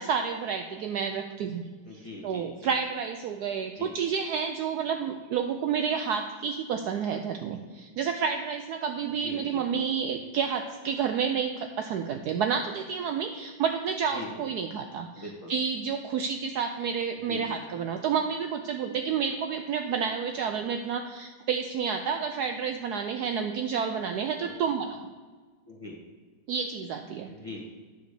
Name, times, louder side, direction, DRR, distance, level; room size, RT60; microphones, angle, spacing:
voice 1, 0.0-1.7 1.9-25.1 26.5-27.3, right 6 dB, 85° right, 5 dB, 0.8 m, -30 dB
voice 2, 1.8-2.7 3.7-3.9 9.2-9.8 14.1-14.5 15.2-15.5 17.3-17.6 24.4-24.5 25.7-26.0 27.3-27.6, left 1 dB, 20° left, -3 dB, 1.0 m, -42 dB
9.5 x 4.0 x 6.6 m, 1.4 s
omnidirectional pair, 2.2 m